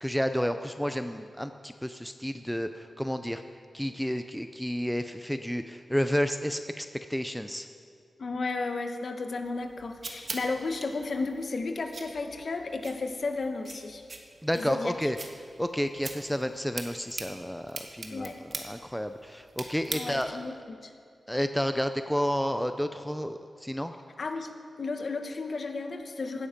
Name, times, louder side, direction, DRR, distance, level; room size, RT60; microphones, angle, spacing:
voice 1, 0.0-3.4 3.7-7.7 14.4-15.2 15.6-18.3 18.6-20.4 21.3-23.9, equal, ahead, 8 dB, 0.4 m, -31 dB
voice 2, 8.2-14.1 14.5-15.1 18.1-18.4 19.9-20.9 24.2-24.5 24.8-26.5, left 3 dB, 50° left, 6 dB, 1.1 m, -33 dB
sound 1, 9.4-20.5, right 3 dB, 45° right, 1.3 m, -43 dB
16.5 x 11.5 x 5.2 m, 2.3 s
wide cardioid pair, 155°, 0 cm